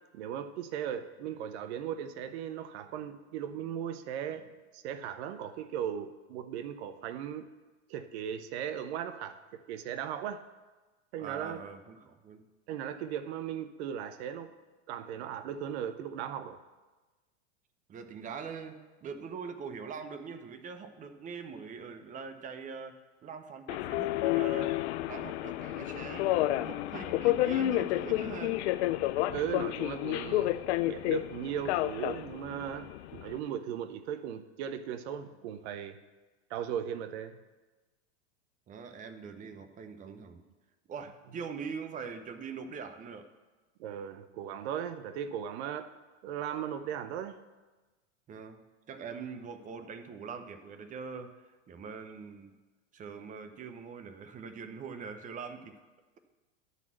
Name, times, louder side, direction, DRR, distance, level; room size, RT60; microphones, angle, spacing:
voice 1, 0.1-7.5 7.9-10.4 11.1-11.6 12.7-14.5 14.9-16.6 29.3-30.6 30.8-36.0 36.5-37.4 43.8-45.9 46.2-47.4, right 9 dB, 65° right, 10 dB, 0.7 m, -37 dB
voice 2, 11.2-12.5 17.9-28.6 38.7-40.4 40.9-43.3 48.3-48.6 48.9-51.3 51.7-52.6 52.9-55.8, right 5 dB, 20° right, 8 dB, 0.7 m, -43 dB
Subway metro underground, 23.7-33.4, left 15 dB, 65° left, 0.5 m, -30 dB
10.5 x 4.1 x 7.5 m, 1.2 s
supercardioid pair, 125°, 36 cm